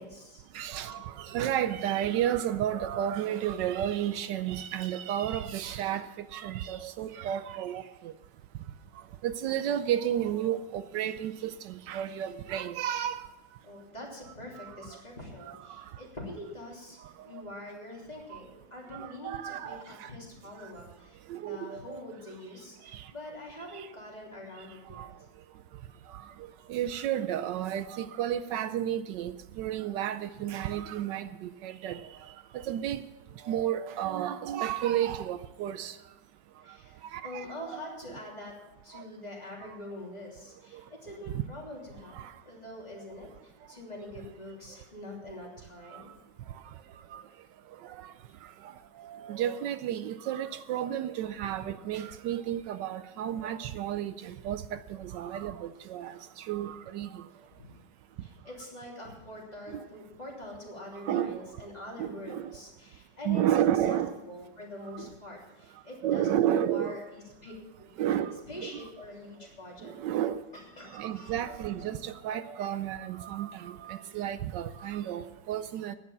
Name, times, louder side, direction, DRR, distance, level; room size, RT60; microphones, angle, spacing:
voice 1, 0.0-0.4 13.6-17.0 17.2-25.1 36.6-38.5 38.8-46.1 57.5-57.7 58.2-64.0 64.3-66.4 66.7-67.5 68.4-69.9 70.5-71.4, left 1 dB, 20° left, 3.1 m, -44 dB
voice 2, 0.5-6.1 6.3-7.8 9.2-13.2 14.6-14.7 15.5-15.6 19.0-20.1 21.3-22.0 25.0-25.1 26.7-32.0 32.7-33.0 33.5-35.9 37.1-37.4 37.7-37.8 38.9-39.0 42.2-42.3 45.9-46.0 47.1-47.2 48.0-48.1 49.0-54.6 54.9-56.1 56.5-57.1 61.1-61.4 62.0-62.5 63.3-64.1 66.0-66.9 68.0-68.8 69.8-70.4 70.9-76.0, right 11 dB, 80° right, 1.2 m, -32 dB
10.5 x 9.3 x 7.1 m
omnidirectional pair, 1.9 m